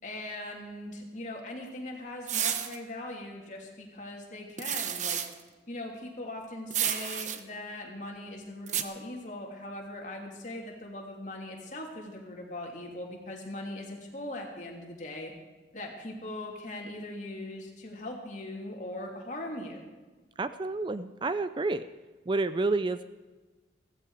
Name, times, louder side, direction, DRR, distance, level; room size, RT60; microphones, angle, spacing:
voice 1, 0.0-5.2 5.7-15.3 15.7-19.8, left 1 dB, 45° left, 0 dB, 3.0 m, -40 dB
sound 1, 2.3-2.8 4.6-5.3 6.7-7.4 8.7-8.8, right 9 dB, 45° right, 0.9 m, -30 dB
voice 2, 20.4-21.9 22.3-23.0, right 3 dB, 25° right, 13 dB, 0.4 m, -29 dB
15.5 x 15.5 x 5.0 m, 1.3 s
head